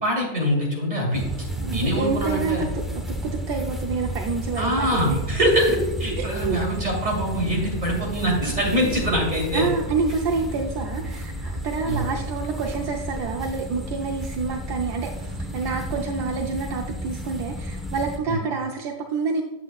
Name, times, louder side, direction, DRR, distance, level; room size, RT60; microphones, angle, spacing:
voice 1, 0.0-2.6 4.6-9.7 11.8-12.0 18.3-18.4, equal, 25° right, -2 dB, 2.1 m, -24 dB
sound 1, 1.1-18.2, equal, ahead, 0.5 m, -32 dB
voice 2, 1.6-5.2 6.2-6.6 9.5-19.4, right 4 dB, 80° right, 1 dB, 1.2 m, -28 dB
8.5 x 8.4 x 2.3 m, 1.1 s
omnidirectional pair, 1.7 m